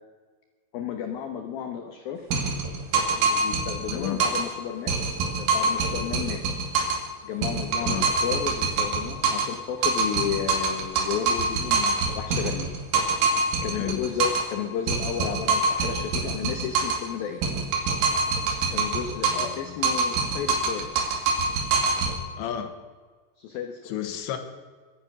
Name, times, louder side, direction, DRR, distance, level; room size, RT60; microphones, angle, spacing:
voice 1, 0.7-2.3 3.1-4.9 5.3-6.4 7.2-12.7 13.6-17.4 18.7-20.9 23.4-23.9, left 8 dB, 90° left, 5 dB, 2.0 m, -32 dB
sound 1, 2.3-4.5 4.9-7.1 7.4-9.6 9.8-14.5 14.9-17.1 17.4-19.6 19.8-22.1, right 3 dB, 75° right, 4.8 m, -25 dB
voice 2, 3.9-4.2 7.8-8.1 13.7-14.0 19.3-19.8 22.4-22.7 23.9-24.4, left 10 dB, 70° left, 7 dB, 3.2 m, -32 dB
23.0 x 9.9 x 6.1 m, 1.4 s
omnidirectional pair, 5.9 m